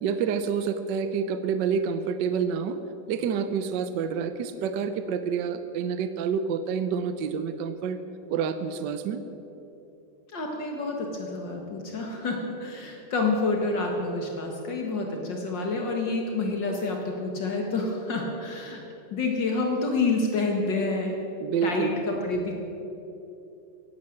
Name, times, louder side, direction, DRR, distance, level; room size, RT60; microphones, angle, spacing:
voice 1, 0.0-2.8 3.1-8.0 8.3-9.2 21.4-21.9, right 6 dB, 65° right, 10 dB, 1.3 m, -28 dB
voice 2, 10.3-18.8 19.1-21.1 21.6-22.6, left 3 dB, 65° left, 1 dB, 2.3 m, -28 dB
16.0 x 11.5 x 7.7 m, 3.0 s
omnidirectional pair, 2.2 m